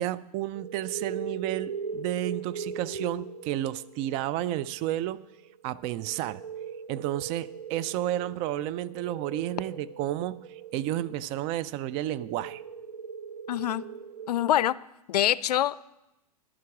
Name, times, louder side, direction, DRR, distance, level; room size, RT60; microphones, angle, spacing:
voice 1, 0.0-5.2 5.6-6.4 6.9-12.6, right 13 dB, 30° right, 17 dB, 0.3 m, -31 dB
sound 1, 0.5-14.7, right 6 dB, 90° right, 1.0 m, -40 dB
voice 2, 13.5-13.8 14.3-14.8 15.1-15.8, left 12 dB, 80° left, 20 dB, 0.4 m, -25 dB
11.5 x 9.6 x 6.0 m, 0.91 s
hypercardioid pair, 135°, 20 cm